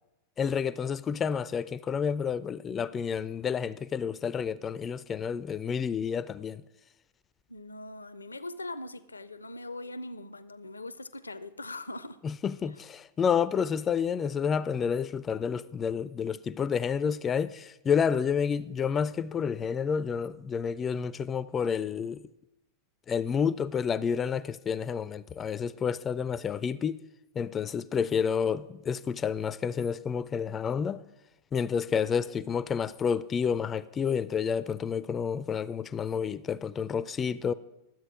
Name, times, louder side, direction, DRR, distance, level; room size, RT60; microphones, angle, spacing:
voice 1, 0.4-6.6 12.2-22.2 23.1-27.0 27.4-31.0 31.5-37.5, left 7 dB, 25° left, 0.3 m, -29 dB
voice 2, 7.5-12.2, left 2 dB, 80° left, 0.5 m, -41 dB
12.0 x 7.8 x 4.8 m
figure-of-eight pair, 90°, 0 cm